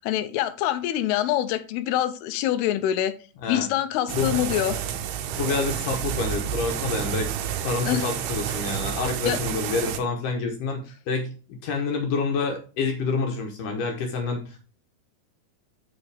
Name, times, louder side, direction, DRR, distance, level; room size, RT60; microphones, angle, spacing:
voice 1, 0.0-3.1 3.5-4.8 7.9-8.1 9.3-9.4, left 12 dB, 85° left, 2.6 m, -25 dB
sound 1, 4.1-10.0, right 9 dB, 85° right, 2.9 m, -30 dB
voice 2, 5.4-7.3 7.6-10.8 11.1-11.3 11.6-14.6, left 4 dB, 65° left, 2.4 m, -27 dB
7.1 x 6.8 x 3.4 m
omnidirectional pair, 4.5 m